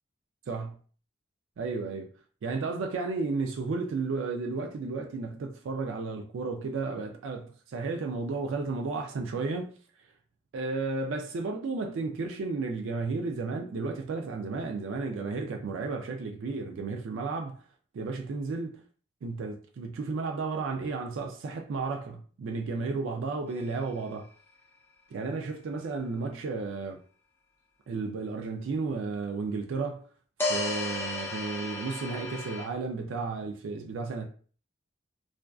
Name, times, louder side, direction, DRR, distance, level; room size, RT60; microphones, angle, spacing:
voice 1, 1.6-2.1 2.4-9.7 10.5-17.6 17.9-18.8 19.2-24.3 25.1-27.0 27.9-30.0 30.5-34.3, right 4 dB, 80° right, 0.3 m, -33 dB
sound 1, 23.5-23.6 30.4-32.7, left 2 dB, 10° left, 0.4 m, -33 dB
2.4 x 2.2 x 2.3 m
head